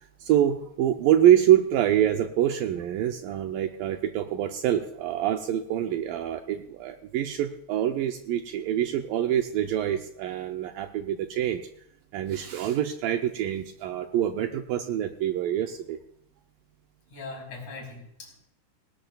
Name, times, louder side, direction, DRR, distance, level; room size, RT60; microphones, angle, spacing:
voice 1, 0.2-11.6 12.1-16.0, right 11 dB, 90° right, 5 dB, 2.0 m, -25 dB
voice 2, 17.1-18.5, left 3 dB, 45° left, 0 dB, 5.4 m, -41 dB
18.5 x 18.5 x 2.3 m, 0.75 s
omnidirectional pair, 4.8 m